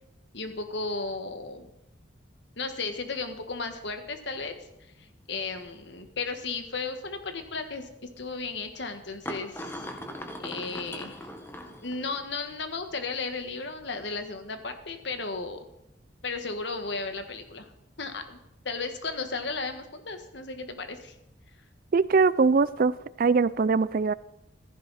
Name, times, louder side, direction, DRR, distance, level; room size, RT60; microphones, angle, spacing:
voice 1, 0.3-1.7 2.6-4.6 5.3-7.9 8.2-9.8 10.4-11.3 11.8-15.6 16.2-17.7 18.0-18.4 18.6-21.1, left 4 dB, 60° left, 7 dB, 1.6 m, -34 dB
sound 1, 4.7-4.8 5.3-5.6 6.8-6.9 8.2-8.3 9.3-12.3, left 1 dB, 10° left, 1.5 m, -39 dB
voice 2, 21.9-24.1, right 4 dB, 45° right, 18 dB, 0.4 m, -22 dB
15.0 x 15.0 x 4.2 m, 0.86 s
head